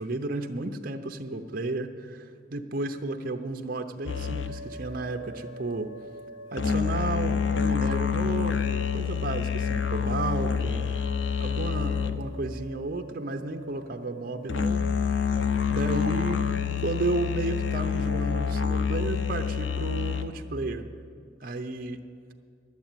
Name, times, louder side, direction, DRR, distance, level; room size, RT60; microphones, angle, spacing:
voice 1, 0.0-5.9 6.5-10.9 11.4-15.2 15.7-16.5 16.8-20.8 21.4-22.0, right 2 dB, 50° right, 6 dB, 0.7 m, -33 dB
sound 1, 4.1-12.5 14.5-20.3, left 7 dB, 80° left, 0.6 m, -28 dB
11.0 x 8.4 x 9.1 m, 2.3 s
head